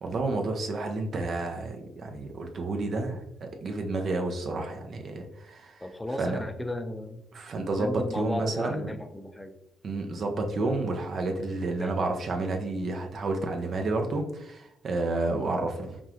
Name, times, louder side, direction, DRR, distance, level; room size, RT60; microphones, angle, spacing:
voice 1, 0.0-5.9 6.2-6.4 7.3-8.8 9.8-16.0, right 2 dB, 55° right, 3 dB, 0.8 m, -30 dB
voice 2, 5.8-7.2 7.8-9.5 11.8-11.9, left 1 dB, 10° left, 7 dB, 0.5 m, -35 dB
5.3 x 2.5 x 3.1 m, 0.79 s
cardioid pair, 90°, 0 cm